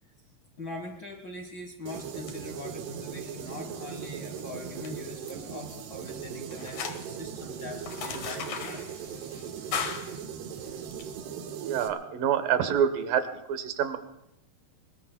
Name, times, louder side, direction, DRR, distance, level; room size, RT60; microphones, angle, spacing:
voice 1, 0.6-8.9, left 2 dB, 90° left, 2 dB, 1.0 m, -42 dB
sound 1, 1.9-11.1, left 6 dB, 60° left, 2.3 m, -41 dB
sound 2, 1.9-11.9, right 8 dB, 85° right, 3.2 m, -39 dB
voice 2, 11.6-14.0, right 8 dB, 70° right, 9 dB, 2.5 m, -27 dB
25.0 x 22.0 x 2.2 m, 0.85 s
omnidirectional pair, 4.6 m